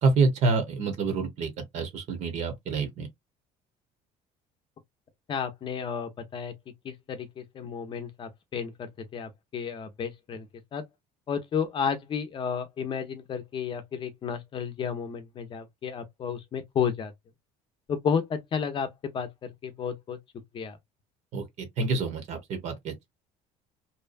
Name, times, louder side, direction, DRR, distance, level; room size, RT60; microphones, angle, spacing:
voice 1, 0.0-3.1 21.3-23.1, right 4 dB, 55° right, 1.0 m, -27 dB
voice 2, 5.3-6.5 6.8-10.5 10.7-10.8 11.3-17.1 17.9-20.2 20.5-20.8, left 7 dB, 35° left, 0.6 m, -32 dB
2.7 x 2.2 x 2.5 m
cardioid pair, 130°, 14 cm